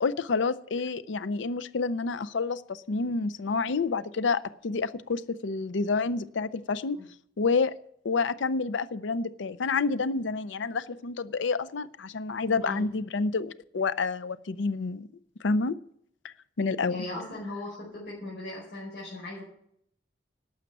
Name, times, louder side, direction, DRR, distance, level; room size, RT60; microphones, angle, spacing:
voice 1, 0.0-7.0 7.4-7.7 8.0-15.1 15.4-15.8 16.2-17.0, left 4 dB, 85° left, 16 dB, 0.5 m, -29 dB
voice 2, 16.9-19.4, left 2 dB, 65° left, -5 dB, 4.9 m, -38 dB
12.0 x 7.2 x 9.1 m, 0.69 s
head